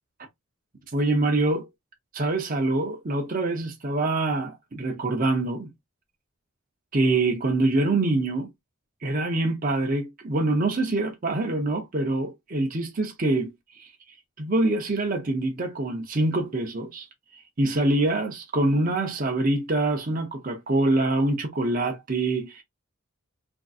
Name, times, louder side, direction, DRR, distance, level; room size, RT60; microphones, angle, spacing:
voice 1, 0.9-1.7 2.1-5.7 6.9-8.5 9.0-13.9 14.4-17.1 17.6-22.6, right 2 dB, 40° right, 0.6 m, -25 dB
3.5 x 2.6 x 2.3 m
head